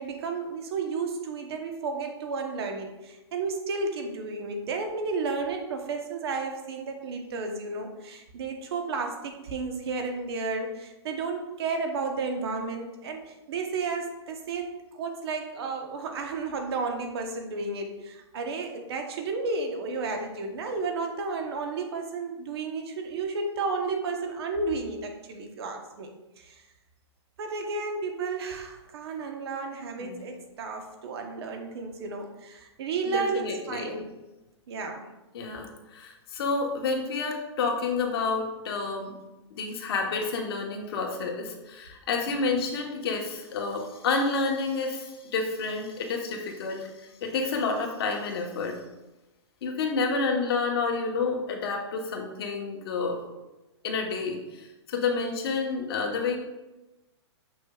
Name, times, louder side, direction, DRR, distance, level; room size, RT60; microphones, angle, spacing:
voice 1, 0.0-26.1 26.4-26.6 27.4-34.1 34.7-35.1, right 4 dB, 60° right, 4 dB, 1.1 m, -32 dB
voice 2, 33.1-33.9 35.3-39.1 39.5-48.8 49.6-53.2 53.8-56.4, left 4 dB, 55° left, 1 dB, 1.3 m, -29 dB
6.5 x 6.2 x 2.4 m, 1.0 s
hypercardioid pair, 160°, 15 cm